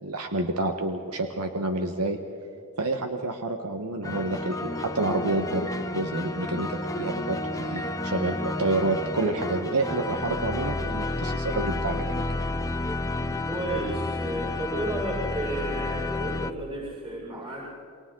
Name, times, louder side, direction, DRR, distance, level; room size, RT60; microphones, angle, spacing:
voice 1, 0.0-2.2 2.8-12.2, right 2 dB, 90° right, 5 dB, 1.4 m, -29 dB
sound 1, 4.0-16.5, left 2 dB, 15° left, 0.8 m, -31 dB
voice 2, 13.2-17.7, right 1 dB, 25° right, -6 dB, 6.1 m, -32 dB
29.0 x 24.0 x 3.9 m, 2.7 s
head